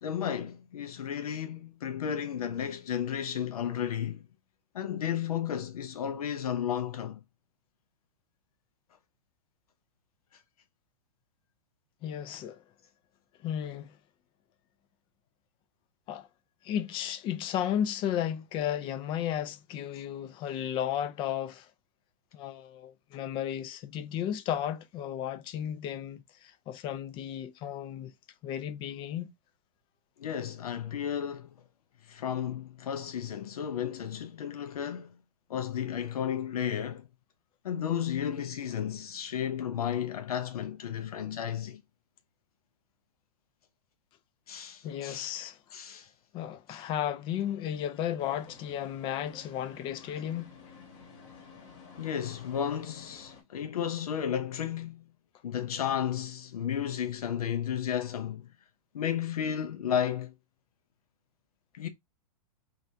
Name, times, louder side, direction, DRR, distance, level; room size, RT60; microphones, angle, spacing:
voice 1, 0.0-4.3 4.7-7.2 30.2-31.5 32.1-35.2 35.5-37.1 37.6-41.8 44.5-45.3 45.7-46.1 46.7-46.8 52.0-55.1 55.4-58.4 58.9-60.3 61.7-61.9, left 9 dB, 90° left, 0.5 m, -33 dB
voice 2, 12.0-12.6 13.4-14.0 16.1-16.3 16.6-21.7 22.3-28.1 28.4-29.3 44.8-45.6 46.3-50.6, left 10 dB, 25° left, 0.4 m, -34 dB
sound 1, 48.2-53.4, left 5 dB, 55° left, 1.3 m, -51 dB
2.6 x 2.4 x 3.3 m
hypercardioid pair, 130°, 19 cm